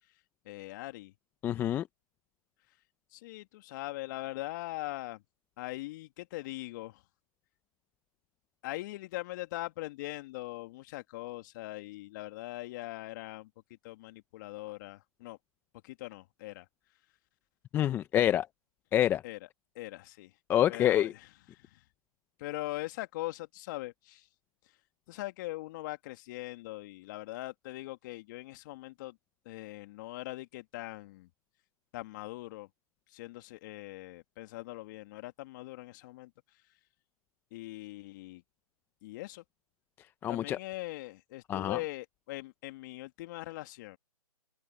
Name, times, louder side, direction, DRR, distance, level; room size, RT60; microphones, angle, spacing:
voice 1, 0.4-1.1 3.1-5.2 5.6-7.0 8.6-13.5 13.8-15.4 15.8-16.7 19.2-19.4 19.7-20.3 20.7-21.2 21.5-21.8 22.4-24.3 25.1-29.2 29.5-31.3 31.9-32.7 33.1-36.3 37.5-38.4 39.0-39.4 40.3-44.0, left 18 dB, 30° left, 2.6 m, -41 dB
voice 2, 1.4-1.8 17.7-18.5 18.9-19.2 20.5-21.1 40.2-40.6 41.5-41.8, left 11 dB, 10° left, 0.8 m, -26 dB
figure-of-eight pair, 145°, 19 cm